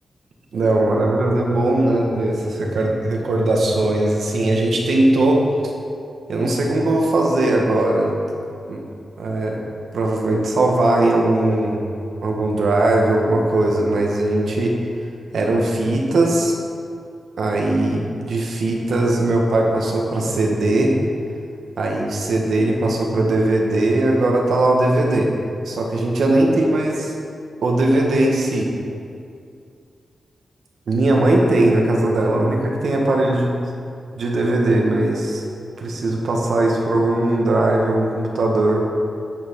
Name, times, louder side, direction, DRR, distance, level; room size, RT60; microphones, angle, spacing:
voice 1, 0.5-5.4 6.3-8.1 8.7-8.8 9.2-9.6 9.9-11.8 12.2-14.7 15.3-16.5 17.4-20.9 21.8-25.3 25.6-27.1 27.6-28.7 30.9-33.5 34.1-35.4 35.8-38.9, right 2 dB, 75° right, -1 dB, 1.7 m, -19 dB
11.0 x 5.8 x 6.4 m, 2.4 s
wide cardioid pair, 155°, 0 cm